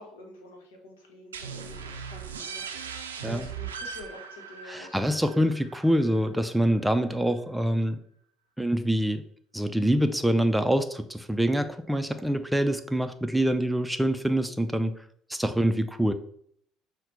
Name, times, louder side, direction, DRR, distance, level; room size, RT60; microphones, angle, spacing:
voice 1, 0.0-5.1, left 2 dB, 80° left, 2 dB, 0.9 m, -47 dB
sound 1, 1.3-6.8, right 6 dB, 85° right, 0.4 m, -39 dB
voice 2, 4.7-8.0 8.6-9.2 9.5-14.9 15.3-16.1, right 1 dB, 5° right, 9 dB, 0.4 m, -25 dB
5.8 x 2.2 x 3.9 m, 0.65 s
hypercardioid pair, 60°, 0 cm